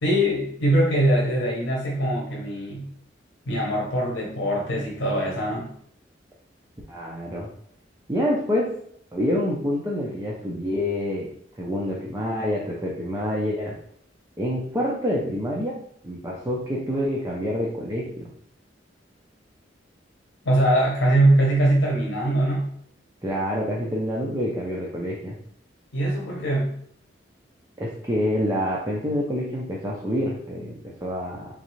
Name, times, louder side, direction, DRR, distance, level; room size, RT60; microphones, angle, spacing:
voice 1, 0.0-2.9 3.5-5.7 20.4-22.7 25.9-26.7, right 1 dB, 80° left, -2 dB, 0.8 m, -22 dB
voice 2, 6.9-7.5 8.1-8.7 9.1-11.3 11.6-13.7 14.4-15.7 16.0-18.0 23.2-25.3 27.8-31.5, equal, 15° right, -4 dB, 0.6 m, -27 dB
3.8 x 3.2 x 3.1 m, 0.66 s
head